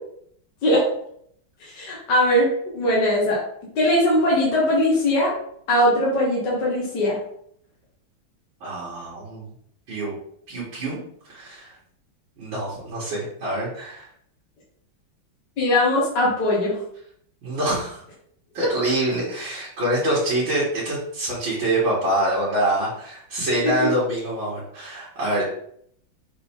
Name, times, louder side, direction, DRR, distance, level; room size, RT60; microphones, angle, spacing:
voice 1, 1.6-3.4 3.8-5.3 5.7-7.2 15.6-16.8 23.6-23.7, left 1 dB, 60° left, -5 dB, 2.2 m, -20 dB
voice 2, 8.6-9.5 9.9-10.1 10.5-11.7 12.4-14.1 17.4-18.0 18.5-25.5, right 1 dB, 70° right, -8 dB, 2.6 m, -25 dB
6.8 x 3.8 x 3.7 m, 0.67 s
omnidirectional pair, 2.2 m